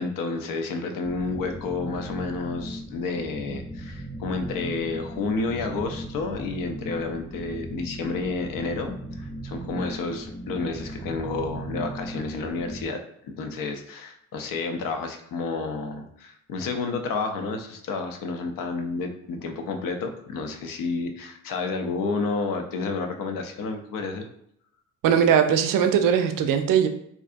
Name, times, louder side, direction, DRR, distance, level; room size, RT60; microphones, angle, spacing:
voice 1, 0.0-24.3, left 4 dB, 65° left, 5 dB, 0.6 m, -30 dB
sound 1, 1.0-12.8, right 1 dB, 5° right, 0.6 m, -37 dB
voice 2, 25.0-26.9, right 8 dB, 60° right, 7 dB, 0.5 m, -20 dB
2.5 x 2.3 x 2.5 m, 0.72 s
hypercardioid pair, 50°, 36 cm